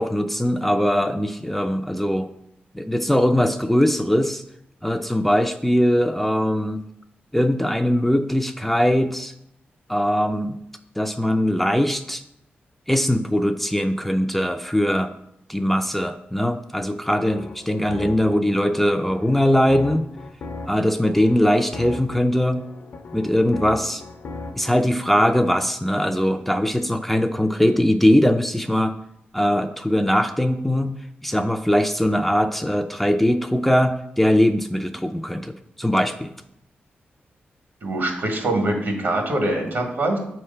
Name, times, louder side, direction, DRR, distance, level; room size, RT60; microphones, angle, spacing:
voice 1, 0.0-2.3 2.7-4.4 4.8-6.8 7.3-9.3 9.9-10.6 11.0-12.2 12.9-15.1 15.5-20.0 20.7-22.6 23.1-24.0 24.5-28.9 29.3-30.9 31.2-36.3, equal, 5° left, 6 dB, 0.4 m, -21 dB
sound 1, 17.0-24.7, left 3 dB, 65° left, 0.7 m, -38 dB
voice 2, 37.8-40.2, right 1 dB, 70° right, 2 dB, 1.7 m, -23 dB
7.2 x 3.3 x 5.6 m, 0.79 s
cardioid pair, 80°, 4 cm